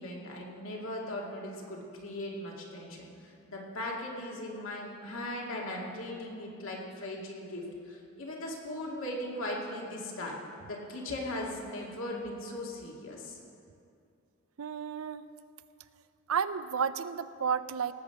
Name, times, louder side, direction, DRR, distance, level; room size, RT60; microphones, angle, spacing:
voice 1, 0.0-10.3 10.7-13.4, left 1 dB, 70° left, -2 dB, 2.3 m, -38 dB
voice 2, 14.6-15.2 16.3-17.9, right 7 dB, 80° right, 13 dB, 0.5 m, -32 dB
18.5 x 8.2 x 5.9 m, 2.4 s
head